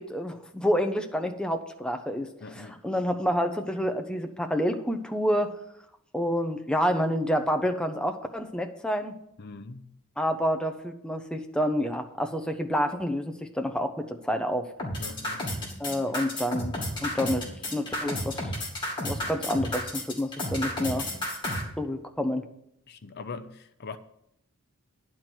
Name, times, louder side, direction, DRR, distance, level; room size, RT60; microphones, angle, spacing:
voice 1, 0.0-2.3 2.6-5.5 6.1-9.1 10.2-14.7 15.8-16.7 17.0-18.4 19.0-21.1 21.8-22.4, equal, 5° left, 4 dB, 0.6 m, -28 dB
voice 2, 2.4-2.8 9.4-9.9 15.0-15.5 16.1-16.2 19.1-19.2 20.9-21.1 22.9-24.0, left 4 dB, 45° left, 9 dB, 0.5 m, -42 dB
sound 1, 14.8-21.6, left 1 dB, 20° left, 2.5 m, -31 dB
10.5 x 4.4 x 7.8 m, 0.77 s
head